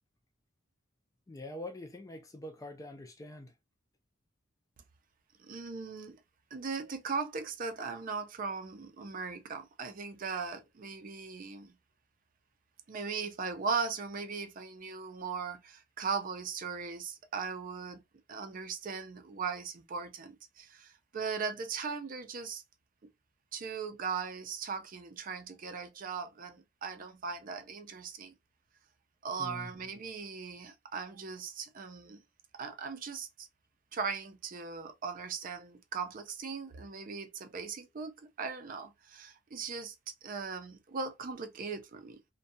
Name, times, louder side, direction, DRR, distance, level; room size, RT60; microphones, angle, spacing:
voice 1, 1.3-3.5 29.4-29.7, left 1 dB, 15° left, 0.3 m, -44 dB
voice 2, 5.4-6.2 6.5-11.7 12.9-18.0 18.3-22.6 23.5-28.3 29.2-32.2 32.5-33.5 33.9-42.2, right 5 dB, 45° right, 0.4 m, -38 dB
2.6 x 2.2 x 2.6 m
head